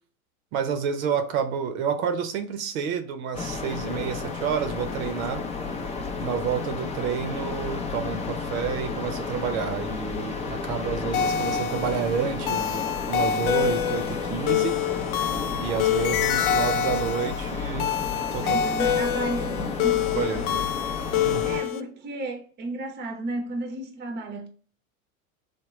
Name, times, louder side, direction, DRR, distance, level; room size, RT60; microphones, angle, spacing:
voice 1, 0.5-5.4 6.2-14.8 15.6-17.9 18.3-18.6 20.1-20.6 21.2-21.5, right 7 dB, 70° right, 0.7 m, -29 dB
sound 1, 3.3-21.6, left 4 dB, 15° left, 0.5 m, -32 dB
sound 2, 11.1-21.8, left 9 dB, 80° left, 0.5 m, -26 dB
voice 2, 18.4-20.5 21.2-24.5, right 2 dB, 25° right, 0.7 m, -33 dB
3.6 x 2.2 x 3.0 m
hypercardioid pair, 110°, 43 cm